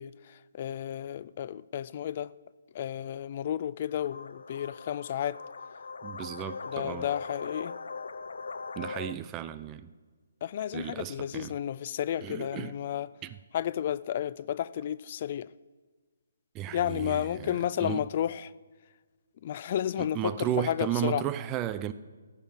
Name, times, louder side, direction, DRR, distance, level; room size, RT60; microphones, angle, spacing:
voice 1, 0.0-2.3 2.7-5.4 6.7-7.7 10.4-13.1 13.5-15.5 16.7-18.5 19.4-21.2, left 10 dB, 40° left, 0.3 m, -32 dB
sound 1, 3.9-9.1, left 4 dB, 75° left, 0.7 m, -40 dB
voice 2, 6.0-7.1 8.8-9.9 10.7-11.6 12.2-12.8 13.2-13.4 16.5-18.0 20.0-21.9, right 11 dB, 20° right, 0.5 m, -34 dB
15.0 x 5.6 x 8.9 m
hypercardioid pair, 160°, 0 cm